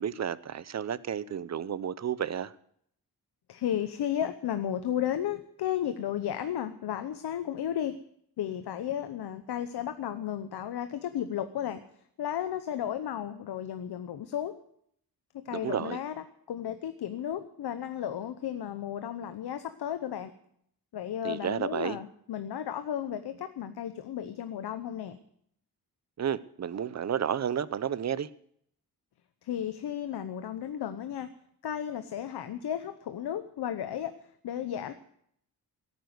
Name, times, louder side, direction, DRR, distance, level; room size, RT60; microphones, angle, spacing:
voice 1, 0.0-2.5 15.5-16.0 21.2-22.0 26.2-28.3, right 8 dB, 45° right, 17 dB, 0.7 m, -31 dB
voice 2, 3.5-8.0 8.4-11.8 12.2-14.5 15.3-20.3 20.9-25.2 29.4-31.3 31.6-34.1 34.4-34.9, left 10 dB, 85° left, 10 dB, 0.9 m, -34 dB
16.5 x 9.5 x 7.9 m, 0.70 s
wide cardioid pair, 130°, 39 cm